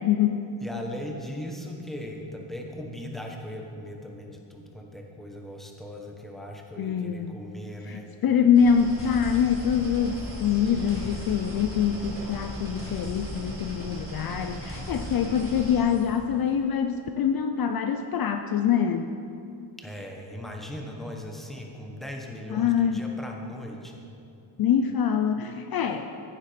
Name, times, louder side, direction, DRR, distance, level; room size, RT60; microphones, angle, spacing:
voice 1, 0.0-0.5 6.8-7.4 7.8-19.1 22.5-23.1 24.6-26.1, left 7 dB, 50° left, 6 dB, 0.5 m, -24 dB
voice 2, 0.6-8.1 19.8-24.0, left 1 dB, ahead, 1 dB, 1.0 m, -38 dB
sound 1, 8.5-15.8, equal, 25° right, 3.2 m, -38 dB
sound 2, 9.0-9.9 10.2-16.2, left 1 dB, 30° left, 1.9 m, -43 dB
15.0 x 7.3 x 5.0 m, 2.7 s
wide cardioid pair, 170°, 46 cm